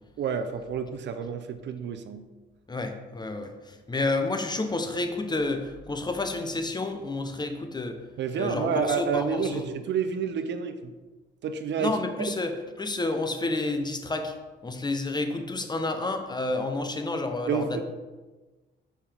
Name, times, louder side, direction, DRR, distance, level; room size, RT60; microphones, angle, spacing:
voice 1, 0.2-2.2 8.2-10.9 11.4-11.9 12.3-12.4 17.5-17.8, right 6 dB, 65° right, 9 dB, 0.6 m, -29 dB
voice 2, 2.7-8.0 8.3-9.6 11.8-14.3 14.6-17.8, left 2 dB, 20° left, 6 dB, 0.8 m, -30 dB
7.1 x 5.6 x 3.5 m, 1.2 s
cardioid pair, 90°, 20 cm